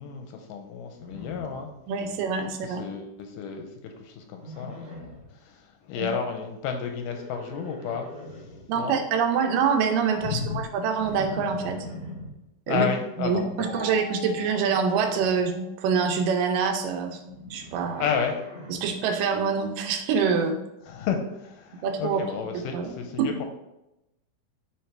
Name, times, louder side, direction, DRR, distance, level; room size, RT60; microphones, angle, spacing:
voice 1, 0.0-1.7 2.6-4.8 5.4-8.1 8.8-9.0 10.2-10.6 12.7-13.9 18.0-18.4 20.9-23.4, left 6 dB, 80° left, 4 dB, 2.0 m, -31 dB
Livestock farm animals working animals, 0.9-2.2 2.5-3.0 4.3-5.3 6.9-8.6 10.9-12.3 14.3-15.4 17.2-18.9, left 1 dB, 35° right, 2.3 m, -42 dB
voice 2, 1.9-2.8 6.0-6.1 8.7-11.8 12.7-12.9 13.2-17.2 17.5-18.1 18.7-20.6 21.8-22.2 22.5-22.9 23.2-23.3, right 6 dB, 80° right, 5 dB, 2.2 m, -25 dB
Mallet percussion, 13.6-15.9, left 6 dB, 60° right, 2.5 m, -43 dB
8.7 x 3.3 x 3.3 m, 0.90 s
omnidirectional pair, 4.0 m